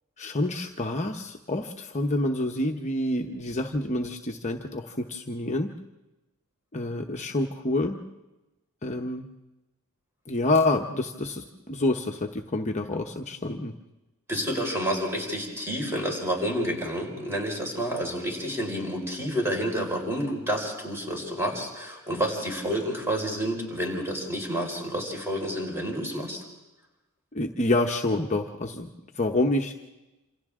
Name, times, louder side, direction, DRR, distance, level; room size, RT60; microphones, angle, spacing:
voice 1, 0.2-5.7 6.7-8.0 8.8-9.3 10.3-13.7 27.3-29.7, left 2 dB, 30° left, 3 dB, 1.0 m, -27 dB
voice 2, 14.3-26.4, equal, 10° right, 0 dB, 5.0 m, -29 dB
28.0 x 27.0 x 3.7 m, 1.0 s
head